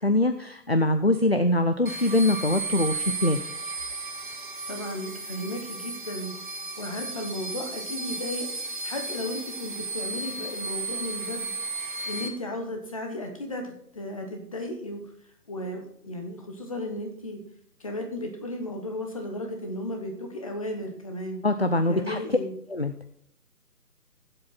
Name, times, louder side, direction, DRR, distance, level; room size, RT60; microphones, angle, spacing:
voice 1, 0.0-3.4 21.4-22.4 22.7-22.9, left 1 dB, 45° left, 9 dB, 0.4 m, -23 dB
sound 1, 1.9-12.3, right 3 dB, 30° right, 0.8 m, -34 dB
voice 2, 4.7-6.3 6.8-11.5 12.0-15.0 15.5-17.4 17.8-21.4 21.9-22.5, left 1 dB, 20° left, 3 dB, 1.0 m, -34 dB
15.0 x 7.7 x 4.1 m, 0.71 s
figure-of-eight pair, 165°, 48 cm